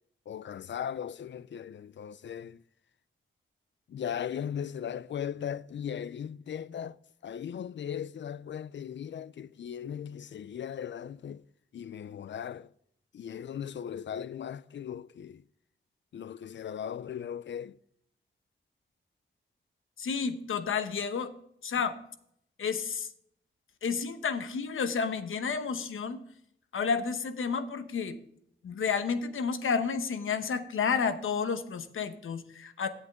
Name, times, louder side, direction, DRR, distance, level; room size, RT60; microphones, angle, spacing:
voice 1, 0.3-2.6 3.9-7.0 7.2-11.4 11.7-12.7 13.1-15.4 16.1-17.8, left 8 dB, 65° left, 0.4 m, -38 dB
voice 2, 20.0-21.3 21.6-22.0 22.6-23.1 23.8-26.2 26.7-28.2 28.6-32.9, left 6 dB, 85° left, 1.0 m, -31 dB
10.5 x 8.2 x 3.5 m
cardioid pair, 75°, 20 cm